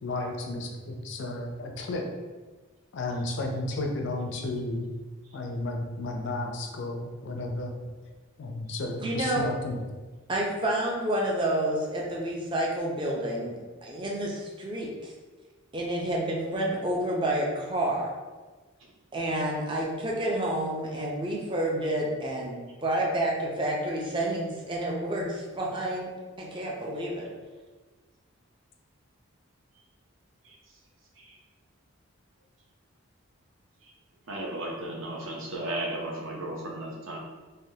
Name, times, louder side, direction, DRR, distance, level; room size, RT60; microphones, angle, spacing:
voice 1, 0.0-2.1 2.9-4.9 5.3-7.7 8.4-9.8, left 2 dB, 55° left, 2 dB, 0.3 m, -33 dB
voice 2, 9.0-9.4 10.3-15.1 15.7-18.1 19.1-26.1 26.4-27.3, right 1 dB, 20° right, -2 dB, 0.4 m, -29 dB
voice 3, 34.3-37.2, right 1 dB, 65° right, -2 dB, 0.6 m, -35 dB
3.3 x 2.2 x 2.7 m, 1.3 s
head